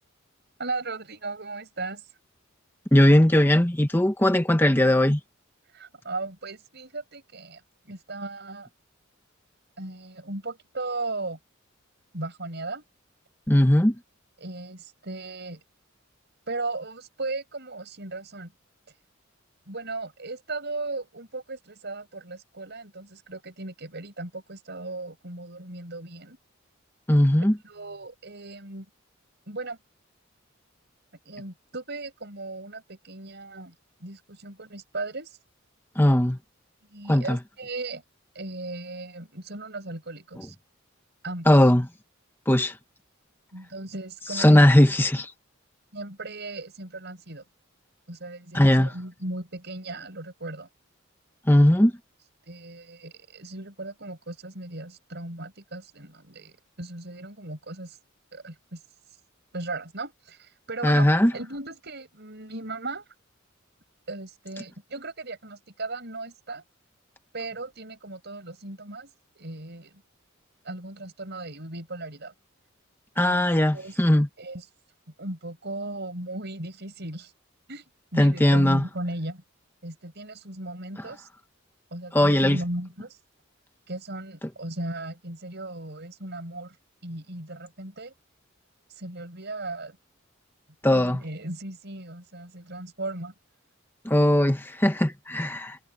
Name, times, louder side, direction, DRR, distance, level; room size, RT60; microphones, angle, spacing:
voice 1, 0.6-2.0 5.7-7.6 7.9-8.7 9.8-11.4 12.1-12.8 14.4-15.6 16.5-18.5 19.7-26.4 27.6-28.9 29.5-29.8 31.2-33.7 34.0-35.4 36.9-38.0 38.3-40.5 41.2-41.5 43.5-44.6 45.9-47.4 48.1-50.7 52.5-58.0 58.3-58.8 59.5-61.1 61.3-63.0 64.1-66.7 67.3-69.1 69.4-70.0 70.6-72.3 73.3-73.5 73.7-74.0 74.4-74.7 75.2-77.3 77.7-77.8 78.1-79.4 79.8-81.3 81.9-83.2 83.9-86.8 87.0-88.1 89.0-90.0 90.9-93.3, right 2 dB, 55° right, 6.3 m, -36 dB
voice 2, 2.9-5.2 13.5-13.9 27.1-27.5 36.0-36.4 37.1-37.4 41.5-41.9 42.5-42.8 44.3-45.3 48.5-48.9 51.5-51.9 60.8-61.3 73.2-74.3 78.2-78.8 82.1-82.6 90.8-91.2 94.0-95.8, left 1 dB, 10° left, 1.2 m, -19 dB
head